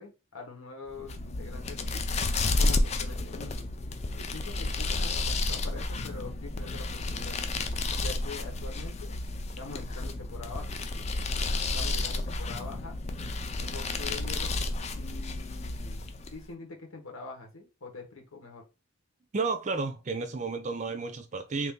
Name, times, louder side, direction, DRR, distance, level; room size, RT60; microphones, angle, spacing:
voice 1, 0.0-2.2 2.5-3.7 4.1-7.4 8.0-9.1 9.6-11.1 11.7-13.0 13.6-14.6 15.0-16.0 16.3-18.6, left 3 dB, 90° left, 1.4 m, -44 dB
sound 1, 0.9-16.4, left 2 dB, 30° left, 0.4 m, -31 dB
voice 2, 19.3-21.7, right 4 dB, 35° right, 0.4 m, -32 dB
3.0 x 2.7 x 3.6 m
head